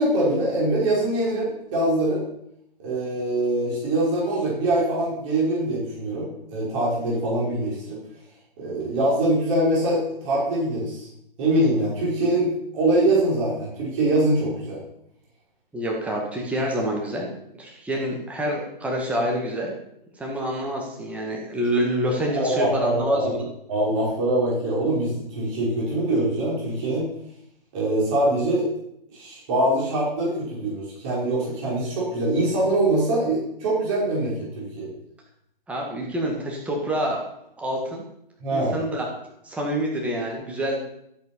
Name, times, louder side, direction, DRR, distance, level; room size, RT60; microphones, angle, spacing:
voice 1, 0.0-2.2 2.8-8.0 8.6-11.1 11.4-14.8 22.3-23.3 23.7-27.1 27.7-28.7 29.1-34.9 38.4-38.8, right 1 dB, 35° right, -6 dB, 5.4 m, -23 dB
voice 2, 15.7-17.3 17.6-19.7 20.2-23.5 35.7-37.2 37.6-38.0 38.5-39.0 39.4-40.8, equal, 5° right, -1 dB, 1.8 m, -27 dB
14.0 x 8.2 x 5.5 m, 0.76 s
figure-of-eight pair, 125°, 29 cm